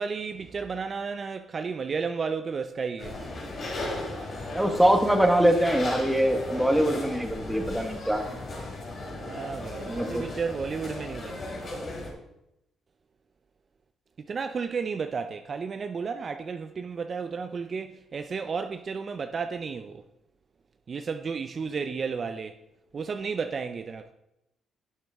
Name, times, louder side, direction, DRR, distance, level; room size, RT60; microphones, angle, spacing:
voice 1, 0.0-3.2 9.2-11.6 14.2-20.0 20.9-22.6 22.9-24.1, right 5 dB, 45° right, 0.6 m, -33 dB
sound 1, 3.0-12.1, left 2 dB, 50° left, 3.6 m, -36 dB
voice 2, 4.5-8.3 9.9-10.2, right 1 dB, 5° right, 1.5 m, -23 dB
11.5 x 7.5 x 3.6 m
cardioid pair, 90°, 0 cm